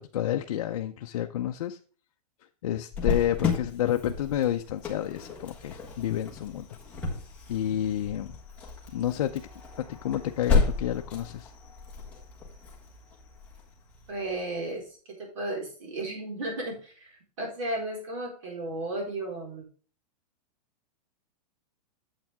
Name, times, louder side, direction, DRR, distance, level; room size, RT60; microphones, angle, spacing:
voice 1, 0.0-1.8 2.6-6.7 7.5-8.4 8.9-9.4 9.8-11.5, left 11 dB, 55° left, 4 dB, 0.6 m, -30 dB
Cricket, 2.9-14.4, left 4 dB, 5° left, 1.4 m, -33 dB
voice 2, 14.1-19.7, right 1 dB, 55° right, -1 dB, 4.6 m, -34 dB
8.9 x 7.5 x 3.5 m, 0.40 s
supercardioid pair, 175°, 20 cm